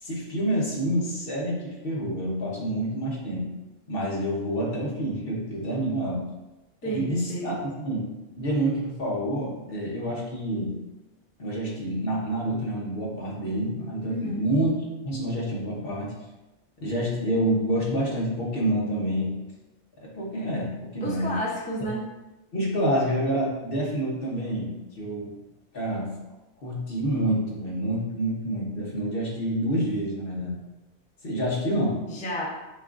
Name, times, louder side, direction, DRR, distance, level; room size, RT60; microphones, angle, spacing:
voice 1, 0.0-3.5 3.9-6.2 6.8-8.0 8.4-10.8 11.4-14.8 15.0-16.1 16.8-19.3 20.0-21.3 22.5-24.7 25.0-25.4 25.7-26.1 26.6-30.6 31.2-32.0, right 1 dB, 50° left, -4 dB, 1.1 m, -28 dB
voice 2, 6.8-7.6 14.1-14.5 21.0-22.1 32.1-32.5, equal, 10° left, -4 dB, 0.4 m, -31 dB
6.7 x 2.4 x 2.5 m, 1.0 s
omnidirectional pair, 1.3 m